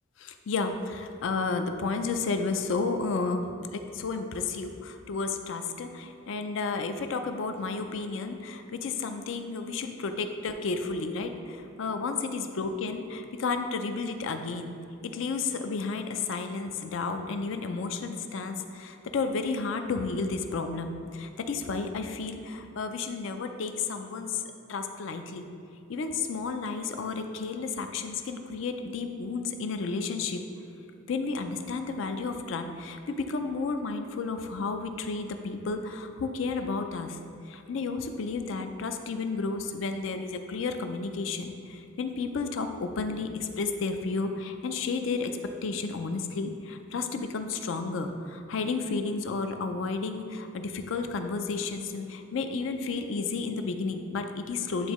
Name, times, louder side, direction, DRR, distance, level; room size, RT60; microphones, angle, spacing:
voice 1, 0.2-14.7 15.0-24.4 24.7-25.5 25.9-30.4 31.1-37.2 37.4-45.3 45.6-54.9, left 4 dB, 70° left, 6 dB, 0.4 m, -32 dB
9.0 x 3.6 x 3.0 m, 2.5 s
head